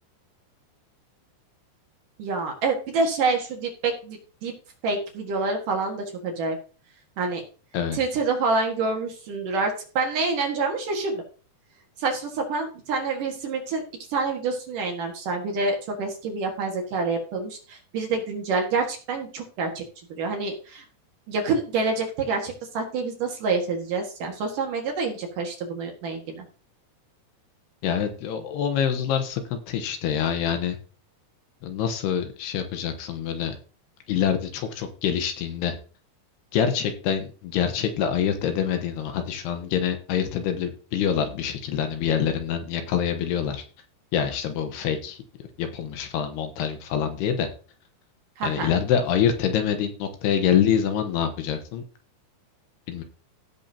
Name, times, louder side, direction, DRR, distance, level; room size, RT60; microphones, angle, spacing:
voice 1, 2.2-4.5 4.8-6.6 7.2-7.4 7.9-11.2 12.0-13.8 14.1-19.9 20.2-20.8 21.3-26.4 48.4-48.7, right 4 dB, 55° right, 2 dB, 2.9 m, -27 dB
voice 2, 27.8-30.8 31.6-33.6 34.1-35.7 36.5-43.6 44.1-45.2 45.6-47.5 48.4-51.8 52.9-53.0, left 8 dB, 75° left, 6 dB, 3.0 m, -25 dB
16.0 x 7.2 x 2.9 m, 0.37 s
omnidirectional pair, 5.0 m